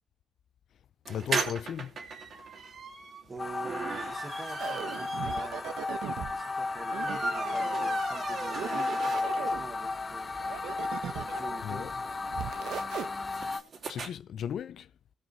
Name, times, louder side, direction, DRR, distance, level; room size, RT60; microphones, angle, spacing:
voice 1, 1.1-1.9 11.6-11.9 13.9-14.9, left 9 dB, 65° left, 0.7 m, -35 dB
sound 1, 1.1-9.6 10.0-10.1 10.4-10.5 10.7-14.1, right 4 dB, 55° right, 3.1 m, -38 dB
voice 2, 3.3-5.7 6.3-10.5 11.2-11.9, right 3 dB, 30° right, 2.5 m, -45 dB
sound 2, 3.4-13.6, left 3 dB, 35° left, 1.0 m, -34 dB
sound 3, 4.6-6.4 6.9-8.0 8.4-9.7 10.4-11.6 12.3-13.1, right 9 dB, 80° right, 1.2 m, -38 dB
18.0 x 6.0 x 4.1 m
cardioid pair, 90°, 0 cm